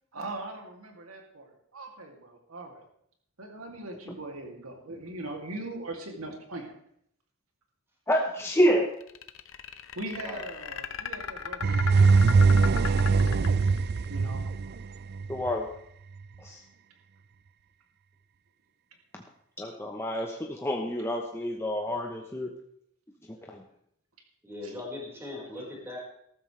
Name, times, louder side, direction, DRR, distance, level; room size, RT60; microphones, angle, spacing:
voice 1, 0.1-2.8 3.4-6.7 9.9-13.7 14.1-14.4 24.6-24.7, right 2 dB, 90° right, 2 dB, 2.7 m, -41 dB
voice 2, 8.1-8.9 15.3-15.7 16.4-16.6 19.6-22.5 23.5-23.6, equal, 10° left, 1 dB, 0.9 m, -28 dB
sound 1, 9.0-14.1, left 7 dB, 70° left, 0.8 m, -36 dB
sound 2, 11.6-15.5, right 4 dB, 50° right, 0.4 m, -22 dB
voice 3, 24.4-26.0, left 2 dB, 10° right, -4 dB, 4.9 m, -39 dB
14.0 x 13.0 x 3.3 m, 0.70 s
head